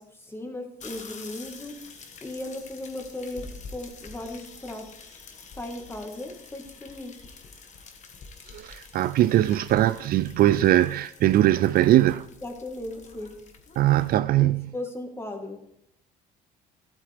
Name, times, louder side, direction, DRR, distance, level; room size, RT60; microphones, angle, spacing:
voice 1, 0.0-1.8 2.2-5.2 5.6-7.2 12.4-13.4 14.4-15.6, left 1 dB, 15° left, 1.8 m, -37 dB
sound 1, 0.8-14.2, left 4 dB, 45° left, 1.5 m, -47 dB
voice 2, 8.5-12.3 13.8-14.7, right 13 dB, 60° right, 0.4 m, -21 dB
13.0 x 8.3 x 3.5 m
cardioid pair, 110°, 17 cm